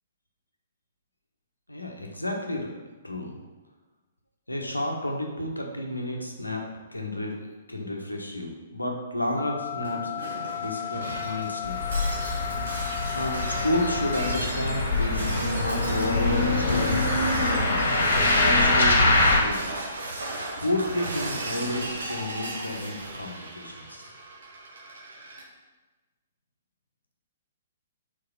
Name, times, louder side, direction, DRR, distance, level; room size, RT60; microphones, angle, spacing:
voice 1, 1.7-2.7 3.0-3.4 4.5-6.6 6.9-10.1 10.5-11.8 13.1-17.8 18.4-19.7 20.6-24.1, left 1 dB, 90° left, 1 dB, 1.1 m, -31 dB
sound 1, 9.4-14.4, left 11 dB, 30° left, 0.6 m, -34 dB
Shatter, 9.8-25.4, right 2 dB, 65° right, 1.2 m, -36 dB
sound 2, 11.6-19.4, left 2 dB, 65° left, 1.6 m, -24 dB
4.8 x 4.7 x 5.9 m, 1.2 s
figure-of-eight pair, 120°, 0 cm